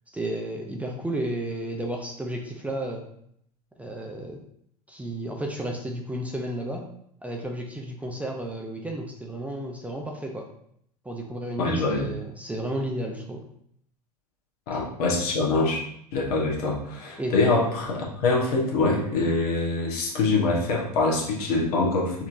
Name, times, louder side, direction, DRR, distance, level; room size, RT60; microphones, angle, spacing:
voice 1, 0.1-3.1 3.8-4.4 4.9-6.9 7.2-10.5 11.0-13.4 14.7-14.8 17.2-17.3, right 1 dB, 5° right, 1 dB, 0.5 m, -32 dB
voice 2, 11.6-12.1 14.7-15.8 16.1-22.3, left 3 dB, 65° left, -1 dB, 1.3 m, -24 dB
4.1 x 2.9 x 2.6 m, 0.69 s
hypercardioid pair, 90°, 20 cm